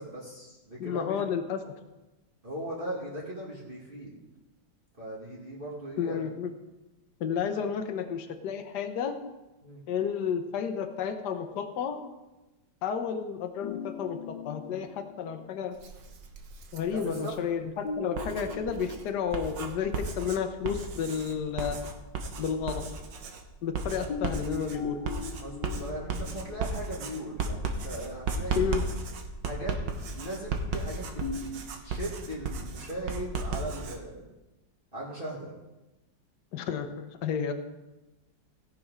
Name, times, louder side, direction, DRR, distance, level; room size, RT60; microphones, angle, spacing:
voice 1, 0.0-1.3 2.4-4.2 5.0-6.3 9.6-9.8 16.9-17.3 23.8-24.1 25.4-28.9 29.4-29.8 30.1-31.5 31.8-34.3 34.9-35.5, right 1 dB, 30° right, -6 dB, 2.3 m, -38 dB
voice 2, 0.8-1.6 6.0-6.5 7.2-9.2 9.9-12.0 12.8-15.8 16.7-21.8 22.4-22.8 23.6-25.0 28.6-28.8 36.5-37.5, left 7 dB, 70° left, 6 dB, 1.4 m, -31 dB
sound 1, 13.6-15.6 17.8-20.0 20.3-20.5 24.1-27.2 31.2-31.9, left 4 dB, 85° left, 1.9 m, -40 dB
Writing, 15.7-17.4 18.0-34.0, right 3 dB, 80° right, 1.8 m, -35 dB
17.0 x 6.1 x 5.4 m, 1.1 s
omnidirectional pair, 1.9 m